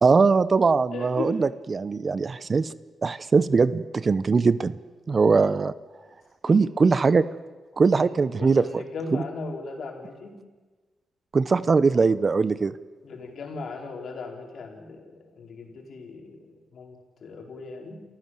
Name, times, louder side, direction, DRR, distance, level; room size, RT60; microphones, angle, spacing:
voice 1, 0.0-2.7 3.0-4.7 5.1-5.7 6.4-7.2 7.8-8.8 9.1-9.2 11.3-12.7, right 4 dB, 40° right, 17 dB, 0.8 m, -21 dB
voice 2, 0.9-1.4 6.5-6.9 7.9-10.4 11.6-11.8 13.0-18.0, left 3 dB, 65° left, 2 dB, 4.5 m, -38 dB
29.0 x 15.0 x 7.7 m, 1.3 s
cardioid pair, 75°, 0 cm